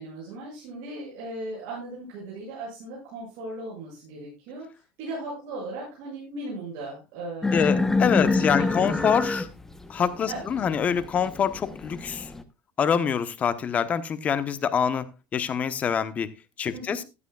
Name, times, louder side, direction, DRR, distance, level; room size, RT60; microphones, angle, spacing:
voice 1, 0.0-4.7 5.0-8.0 8.2-9.2 10.3-10.4 16.7-17.0, right 2 dB, 60° right, -6 dB, 7.5 m, -38 dB
sound 1, 7.4-12.4, left 3 dB, 10° left, 0.9 m, -26 dB
voice 2, 7.5-9.5 9.9-12.3 12.8-16.3 16.6-17.0, left 7 dB, 25° left, 13 dB, 1.0 m, -25 dB
15.0 x 11.0 x 2.4 m, 0.25 s
cardioid pair, 150°, 5 cm